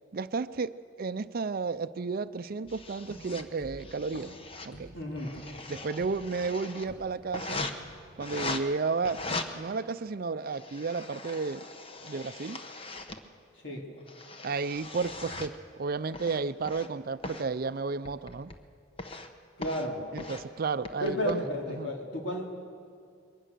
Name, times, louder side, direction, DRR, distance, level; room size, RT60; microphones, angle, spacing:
voice 1, 0.1-0.7 1.0-4.3 4.7-4.9 5.7-7.6 8.2-9.2 9.5-11.6 12.0-12.6 14.4-15.5 15.8-18.5 20.1-21.9, right 4 dB, 50° right, 14 dB, 0.5 m, -32 dB
sound 1, 2.6-7.4 7.8-8.4, right 1 dB, 85° left, 4.2 m, -50 dB
sound 2, 2.7-3.4 3.8-4.7 5.1-6.9 7.3-7.7 8.2-8.6 9.1-9.5 10.2-13.2 13.8-15.6 16.1-16.9 17.2-17.5 18.1-18.6 19.0-19.3 19.6-19.9 20.2-20.4 20.9-21.3, left 2 dB, 30° left, 1.0 m, -40 dB
voice 2, 4.9-5.3 13.6-13.8 19.6-20.0 21.0-22.4, left 1 dB, 70° left, 0 dB, 3.3 m, -32 dB
22.5 x 19.0 x 6.8 m, 2.3 s
head